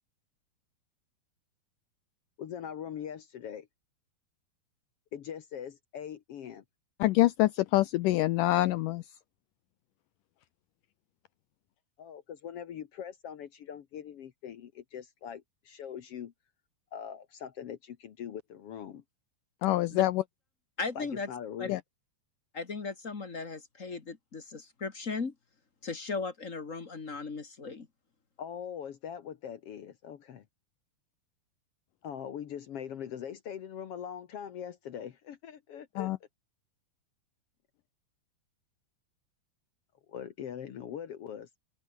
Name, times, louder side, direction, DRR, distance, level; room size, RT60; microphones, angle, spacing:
voice 1, 2.4-3.7 5.1-6.6 12.0-16.3 16.9-19.0 20.9-21.8 28.4-30.4 32.0-36.1 40.1-41.5, left 8 dB, 65° left, 1.4 m, -42 dB
voice 2, 7.0-9.0 19.6-20.2 21.7-21.8 36.0-36.2, left 16 dB, 90° left, 1.9 m, -25 dB
voice 3, 20.8-21.3 21.6-21.7 22.5-25.3 25.8-27.9, left 4 dB, 35° left, 1.2 m, -37 dB
omnidirectional pair, 4.4 m